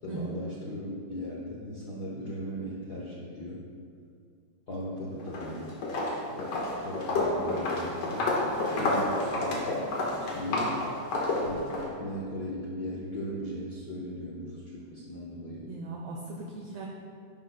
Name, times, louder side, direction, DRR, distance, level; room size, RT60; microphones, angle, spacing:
voice 1, 0.0-3.7 4.7-5.8 6.1-6.4 6.8-8.3 8.8-9.7 10.2-10.8 11.4-15.7, equal, 80° left, -5 dB, 0.8 m, -38 dB
Walk footsteps, 5.2-5.5 5.8-11.9, left 2 dB, 60° left, 2.3 m, -29 dB
voice 2, 15.7-16.9, right 3 dB, 70° right, -1 dB, 1.6 m, -38 dB
11.0 x 11.0 x 2.2 m, 2.3 s
omnidirectional pair, 3.5 m